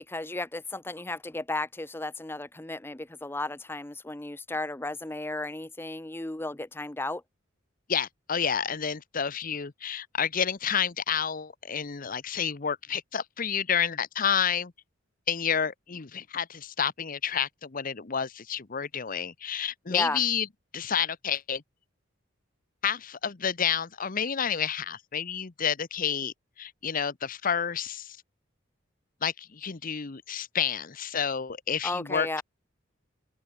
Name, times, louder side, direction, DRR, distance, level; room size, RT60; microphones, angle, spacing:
voice 1, 0.0-7.2 19.9-20.2 31.8-32.4, left 2 dB, 10° left, 0.7 m, -34 dB
voice 2, 7.9-14.7 15.3-20.5 20.7-21.6 22.8-28.2 29.2-32.4, left 7 dB, 45° left, 0.8 m, -30 dB
open air
head